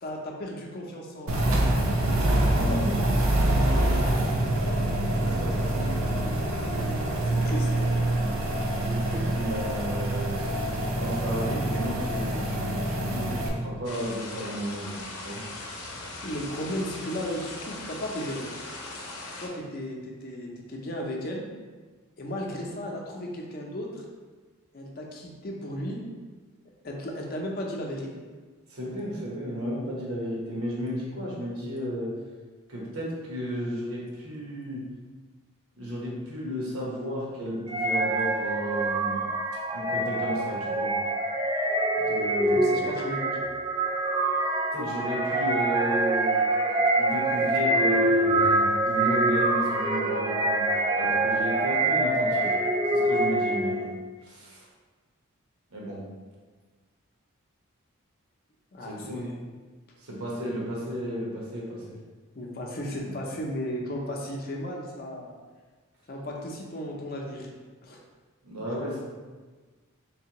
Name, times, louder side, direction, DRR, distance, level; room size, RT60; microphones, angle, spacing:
voice 1, 0.0-1.5 3.6-4.2 7.3-7.7 16.2-18.6 19.4-21.5 22.2-24.0 24.7-26.0 26.8-28.1 42.5-43.4 58.7-59.3 62.4-65.3 66.1-67.5 67.8-68.0, equal, 45° left, 0 dB, 0.5 m, -35 dB
sound 1, 1.3-13.5, right 1 dB, 70° right, 0.6 m, -25 dB
voice 2, 2.5-3.0 5.1-5.9 8.8-10.6 11.0-15.4 28.7-32.1 32.7-34.9 35.8-39.2 39.7-40.9 42.0-42.8 44.7-46.4 46.9-50.7 51.0-52.6 52.9-53.9 54.2-54.7 55.7-56.0 58.8-59.3 60.0-62.0 63.0-63.2 68.4-69.0, equal, 85° right, -4 dB, 1.1 m, -33 dB
sound 2, 13.8-19.5, left 2 dB, 85° left, 0.7 m, -39 dB
sound 3, 37.7-53.9, right 2 dB, 20° right, 0.3 m, -25 dB
3.4 x 3.3 x 2.9 m, 1.4 s
head